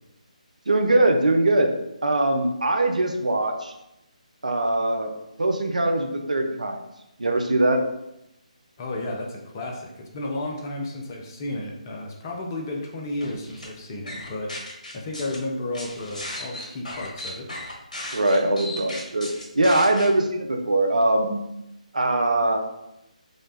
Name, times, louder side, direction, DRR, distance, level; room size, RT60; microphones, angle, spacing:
voice 1, 0.7-1.7 2.0-3.7 4.4-5.1 5.4-6.8 7.2-7.8 18.1-21.4 21.9-22.6, right 2 dB, 65° right, 4 dB, 0.7 m, -22 dB
voice 2, 8.8-17.5, left 2 dB, 25° left, 0 dB, 0.7 m, -33 dB
sound 1, 13.2-13.7 14.1-15.4 15.7-20.1, left 1 dB, 65° left, 1.6 m, -36 dB
5.0 x 2.4 x 4.0 m, 0.87 s
figure-of-eight pair, 145°, 4 cm